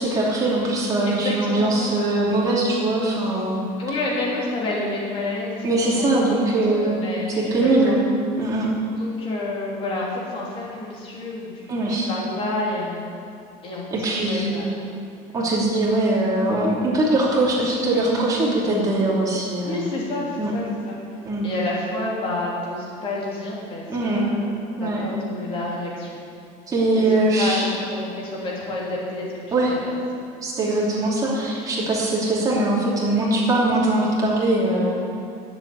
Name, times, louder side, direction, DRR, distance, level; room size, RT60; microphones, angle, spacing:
voice 1, 0.0-3.6 5.6-7.0 7.4-8.0 8.4-8.7 11.7-12.1 13.9-14.5 15.3-19.9 20.4-20.5 21.2-21.5 23.9-24.2 24.8-25.1 26.7-27.7 29.5-29.7 30.4-35.0, right 2 dB, 20° right, -5 dB, 2.8 m, -21 dB
voice 2, 1.0-2.0 3.8-6.4 6.7-8.0 9.0-13.1 13.6-14.7 19.6-21.0 21.4-24.3 24.8-26.2 26.9-27.0 27.4-29.4 29.7-29.9, left 2 dB, 30° left, -4 dB, 3.1 m, -29 dB
11.5 x 7.8 x 8.7 m, 2.5 s
cardioid pair, 175°, 18 cm